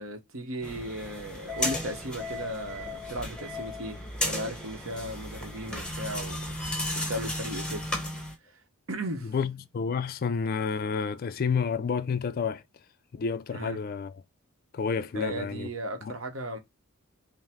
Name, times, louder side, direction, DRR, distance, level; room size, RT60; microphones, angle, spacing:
voice 1, 0.0-4.0 4.2-6.4 6.9-7.8 8.9-9.3 13.5-13.8 15.1-16.6, right 1 dB, 65° right, 1.0 m, -36 dB
sound 1, 0.6-8.3, left 1 dB, 5° left, 0.8 m, -34 dB
voice 2, 9.2-12.6 13.1-14.2 14.7-15.7 16.0-16.1, left 5 dB, 40° left, 0.3 m, -30 dB
5.3 x 2.0 x 3.5 m
head